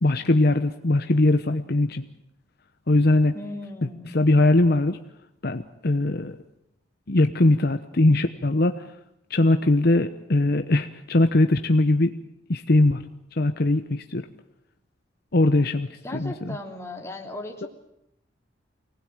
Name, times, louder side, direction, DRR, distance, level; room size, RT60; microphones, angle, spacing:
voice 1, 0.0-2.0 2.9-3.3 4.1-5.0 5.4-6.4 7.1-8.8 9.3-12.1 12.5-13.0 13.4-14.2 15.3-16.6, left 2 dB, 55° left, 8 dB, 1.0 m, -21 dB
voice 2, 3.3-4.1 16.0-17.7, left 1 dB, 15° left, 1 dB, 3.1 m, -37 dB
25.0 x 19.0 x 9.0 m, 0.81 s
head